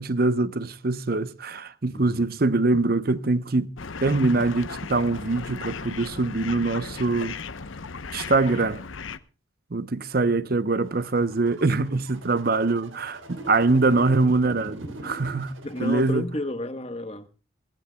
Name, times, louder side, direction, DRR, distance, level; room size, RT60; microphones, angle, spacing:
voice 1, 0.0-3.7 4.0-7.4 8.1-8.8 9.7-15.5 15.8-16.3, right 3 dB, 50° right, 0.8 m, -23 dB
voice 2, 1.9-2.3 10.5-10.7 15.6-17.3, left 1 dB, 30° left, 1.2 m, -32 dB
sound 1, 3.8-9.2, left 5 dB, 80° left, 0.8 m, -36 dB
sound 2, 10.8-16.1, right 1 dB, 80° right, 3.4 m, -41 dB
23.5 x 14.5 x 2.3 m
head